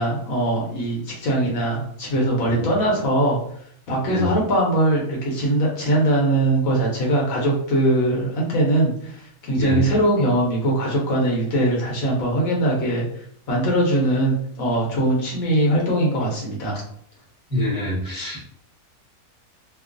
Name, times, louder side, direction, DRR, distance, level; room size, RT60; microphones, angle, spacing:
voice 1, 0.0-3.4 3.9-13.1 13.5-16.8, right 1 dB, 70° left, -2 dB, 1.2 m, -21 dB
voice 2, 9.6-9.9 17.5-18.4, equal, 5° right, -7 dB, 0.9 m, -25 dB
2.9 x 2.0 x 2.5 m, 0.64 s
omnidirectional pair, 1.5 m